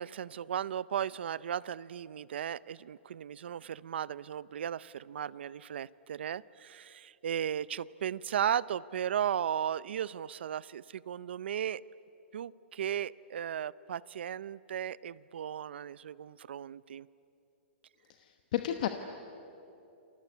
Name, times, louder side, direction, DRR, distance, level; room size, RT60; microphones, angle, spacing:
voice 1, 0.0-11.8 12.3-17.1, right 9 dB, 65° right, 20 dB, 0.6 m, -36 dB
voice 2, 18.1-18.9, left 12 dB, 40° left, 7 dB, 1.1 m, -33 dB
29.0 x 25.0 x 8.3 m, 2.8 s
hypercardioid pair, 175°, 6 cm